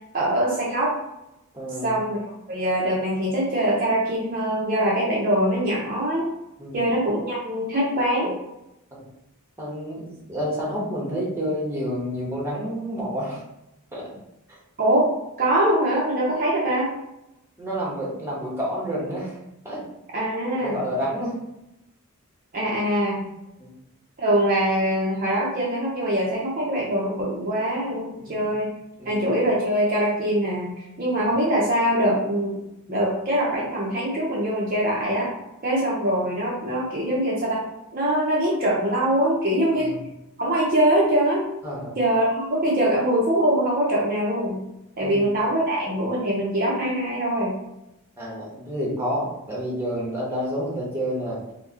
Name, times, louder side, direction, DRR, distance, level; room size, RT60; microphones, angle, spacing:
voice 1, 0.1-0.9 1.8-2.2 2.5-6.3 6.7-8.4 14.8-15.1 15.4-16.9 20.1-20.8 22.5-23.3 24.2-28.7 29.0-30.7 31.0-32.6 32.9-35.3 35.6-37.6 37.9-40.0 40.4-41.5 41.9-44.6 45.0-47.6, right 1 dB, 40° right, -4 dB, 0.7 m, -23 dB
voice 2, 1.5-2.0 6.6-6.9 8.9-9.0 9.6-13.4 13.9-14.1 14.5-14.6 17.6-19.4 19.6-19.8 20.6-21.4 23.6-23.8 28.2-28.5 29.0-29.3 39.7-40.0 41.6-42.0 45.0-45.3 48.2-51.4, equal, 10° right, -5 dB, 1.1 m, -29 dB
4.7 x 2.2 x 2.8 m, 0.87 s
head